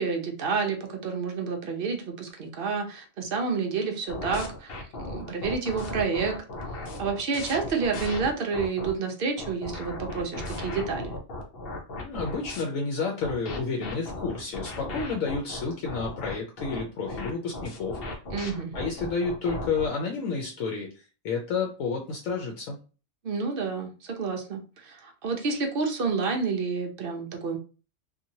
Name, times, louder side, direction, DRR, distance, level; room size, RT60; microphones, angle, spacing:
voice 1, 0.0-4.7 5.0-6.4 7.0-11.2 18.3-18.7 23.2-27.6, right 5 dB, 55° right, 3 dB, 0.7 m, -29 dB
sound 1, 4.1-8.9 9.4-12.6 13.2-19.9, left 2 dB, 50° left, 0.8 m, -36 dB
voice 2, 12.0-18.0 18.7-22.8, left 4 dB, 75° left, 1 dB, 1.0 m, -30 dB
2.9 x 2.6 x 2.7 m, 0.34 s
omnidirectional pair, 1.4 m